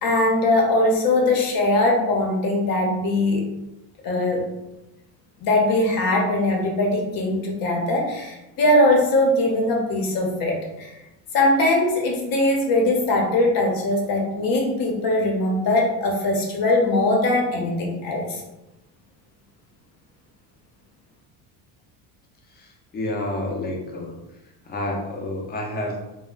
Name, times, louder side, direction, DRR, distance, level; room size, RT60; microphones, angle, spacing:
voice 1, 0.0-3.4 4.0-4.4 5.4-10.9 11.3-18.4, left 1 dB, 55° left, 0 dB, 0.7 m, -21 dB
voice 2, 22.5-24.2 24.6-26.0, left 1 dB, 25° left, 0 dB, 0.6 m, -29 dB
2.1 x 2.1 x 3.7 m, 0.95 s
cardioid pair, 120°, 41 cm